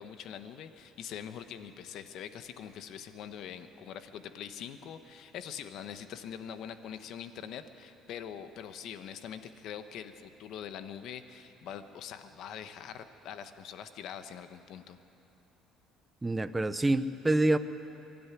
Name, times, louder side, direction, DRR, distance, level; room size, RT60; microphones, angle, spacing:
voice 1, 0.0-15.0, left 8 dB, 60° left, 10 dB, 1.1 m, -43 dB
voice 2, 16.2-17.6, right 2 dB, 10° right, 11 dB, 0.6 m, -26 dB
22.5 x 12.5 x 9.8 m, 3.0 s
cardioid pair, 135°, 0 cm